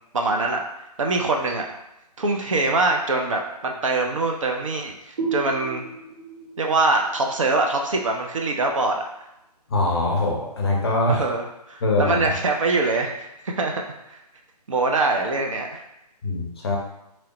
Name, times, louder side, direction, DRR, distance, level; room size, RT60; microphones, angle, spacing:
voice 1, 0.1-0.6 1.0-1.7 2.2-5.8 6.6-9.0 11.1-13.7 14.1-14.2 14.7-15.8, right 3 dB, 50° right, 1 dB, 0.4 m, -23 dB
sound 1, 5.2-8.6, right 5 dB, 70° right, 1.1 m, -34 dB
voice 2, 9.7-11.2 11.8-12.2 16.2-16.8, left 2 dB, 40° left, -1 dB, 0.6 m, -22 dB
2.9 x 2.0 x 2.8 m, 0.88 s
figure-of-eight pair, 145°, 21 cm